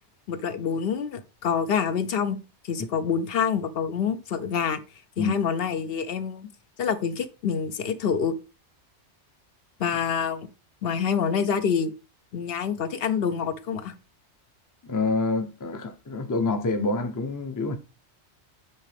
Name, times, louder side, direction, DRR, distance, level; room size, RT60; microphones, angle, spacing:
voice 1, 0.3-2.4 2.6-4.8 5.2-6.5 6.8-8.3 9.8-10.5 10.8-11.9 12.3-13.9, left 7 dB, 65° left, 0.9 m, -26 dB
voice 2, 14.8-17.8, left 3 dB, 20° left, 0.6 m, -27 dB
8.2 x 3.7 x 3.4 m
omnidirectional pair, 1.2 m